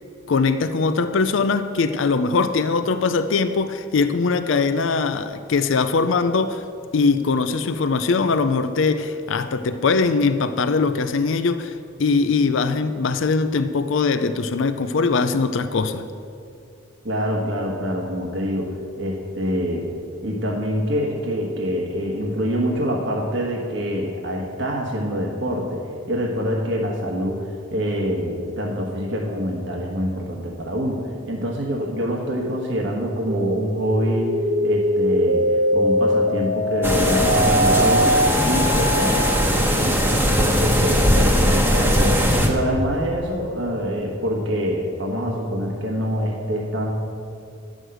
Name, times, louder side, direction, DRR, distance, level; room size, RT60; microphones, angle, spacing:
voice 1, 0.3-6.6 6.9-16.0, left 4 dB, 65° left, 11 dB, 0.4 m, -21 dB
voice 2, 17.0-19.9 20.2-34.3 34.6-46.9, equal, 60° right, -1 dB, 1.3 m, -25 dB
sound 1, 33.3-39.3, equal, 85° right, 1.4 m, -21 dB
sound 2, 36.8-42.5, equal, 10° right, 1.0 m, -19 dB
11.0 x 6.4 x 7.8 m, 2.5 s
head